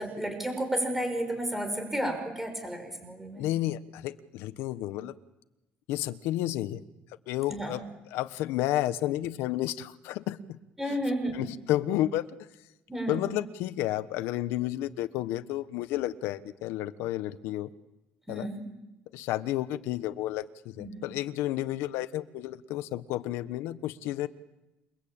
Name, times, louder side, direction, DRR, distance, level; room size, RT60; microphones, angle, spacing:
voice 1, 0.0-3.5 7.5-7.7 10.8-11.4 12.9-13.2 18.3-18.6 20.7-21.0, right 1 dB, 5° right, 6 dB, 6.1 m, -32 dB
voice 2, 3.4-5.1 5.9-6.8 7.3-7.8 8.1-10.6 10.9-11.0 11.3-12.2 13.1-17.7 18.3-18.5 19.1-24.3, left 14 dB, 90° left, 11 dB, 1.2 m, -31 dB
28.5 x 23.5 x 8.8 m, 0.97 s
cardioid pair, 140°, 4 cm